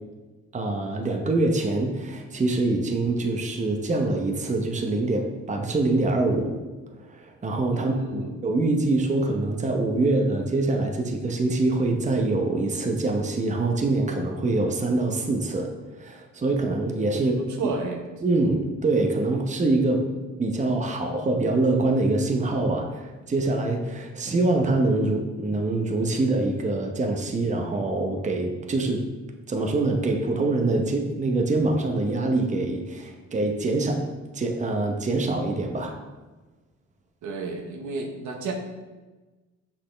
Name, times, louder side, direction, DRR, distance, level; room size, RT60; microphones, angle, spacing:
voice 1, 0.5-6.6 7.1-15.7 16.0-17.4 18.2-20.1 20.4-29.1 29.5-36.0, right 2 dB, 25° right, 3 dB, 0.8 m, -24 dB
voice 2, 7.7-8.3 17.1-18.0 37.2-38.5, right 4 dB, 75° right, 2 dB, 1.1 m, -32 dB
6.2 x 5.9 x 3.3 m, 1.2 s
cardioid pair, 90°, 30 cm